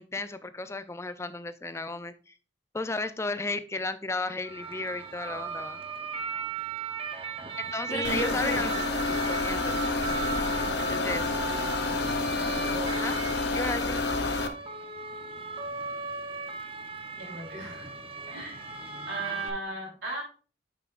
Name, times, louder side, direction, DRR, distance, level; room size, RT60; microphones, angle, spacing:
voice 1, 0.0-2.3 2.7-5.8 7.6-8.7 9.3-9.8 10.8-11.3 12.9-13.2 13.5-13.9, left 3 dB, 15° left, 12 dB, 0.4 m, -34 dB
sound 1, 4.4-19.5, right 4 dB, 30° right, 0.7 m, -37 dB
voice 2, 7.9-8.7 13.6-14.1 17.2-18.0 18.3-18.5 19.1-20.2, right 2 dB, 90° right, -1 dB, 3.4 m, -35 dB
sound 2, 8.0-14.5, left 3 dB, 60° left, 0.8 m, -29 dB
9.2 x 5.7 x 2.4 m, 0.37 s
head